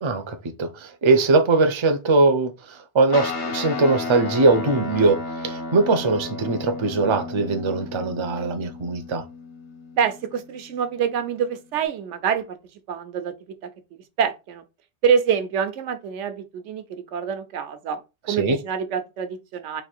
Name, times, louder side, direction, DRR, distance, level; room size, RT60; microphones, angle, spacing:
voice 1, 0.0-9.2 18.3-18.6, right 3 dB, 35° right, 0.4 m, -21 dB
Guitar, 3.1-11.9, left 4 dB, 75° left, 1.1 m, -34 dB
voice 2, 10.0-12.6 12.9-13.3 13.6-13.7 14.2-14.6 15.0-18.0 18.3-19.8, right 7 dB, 85° right, 1.0 m, -26 dB
3.3 x 2.6 x 4.2 m
omnidirectional pair, 1.2 m